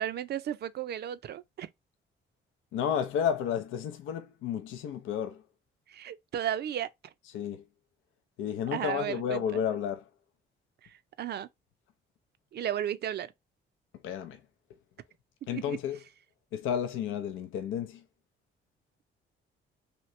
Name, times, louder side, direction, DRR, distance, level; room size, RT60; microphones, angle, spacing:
voice 1, 0.0-1.7 5.9-6.9 8.7-9.4 10.8-11.5 12.5-13.3 15.5-15.8, right 10 dB, 55° right, 0.5 m, -34 dB
voice 2, 2.7-5.4 7.3-7.6 8.4-10.0 14.0-14.4 15.5-16.0 16.5-18.0, left 8 dB, 85° left, 0.5 m, -32 dB
2.9 x 2.8 x 3.0 m
cardioid pair, 90°, 20 cm